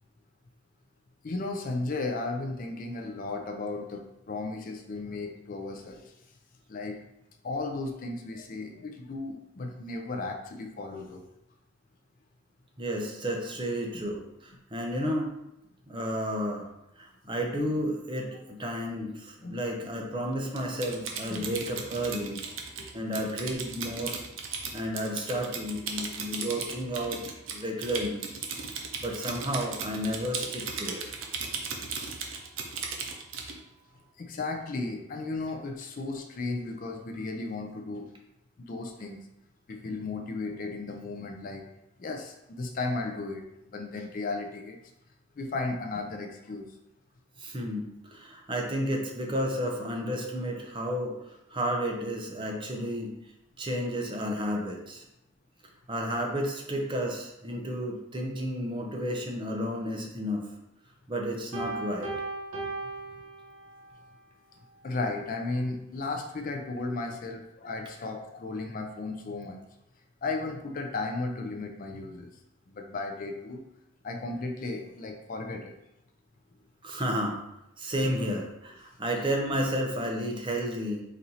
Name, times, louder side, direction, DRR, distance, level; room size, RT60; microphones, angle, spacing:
voice 1, 1.2-6.1 6.7-7.0 7.4-11.2 13.9-14.0 19.4-19.6 21.3-21.5 22.8-22.9 25.9-26.3 34.2-38.1 38.7-39.2 39.7-41.6 42.0-43.4 43.7-44.8 45.4-46.7 64.8-69.6 70.2-72.3 72.7-73.6 74.0-75.7, left 3 dB, 40° left, 4 dB, 0.4 m, -35 dB
voice 2, 12.8-15.3 15.9-16.7 17.0-22.4 22.9-24.1 24.7-27.2 27.5-28.3 29.0-31.0 47.4-51.2 51.5-53.1 53.6-55.0 55.9-60.4 61.1-62.1 76.8-77.4 77.8-81.0, equal, 25° right, 0 dB, 0.6 m, -32 dB
Typing, 20.6-33.6, right 5 dB, 70° right, 0.6 m, -36 dB
Piano, 61.5-63.9, right 3 dB, 85° right, 1.1 m, -36 dB
4.2 x 2.6 x 4.0 m, 0.85 s
head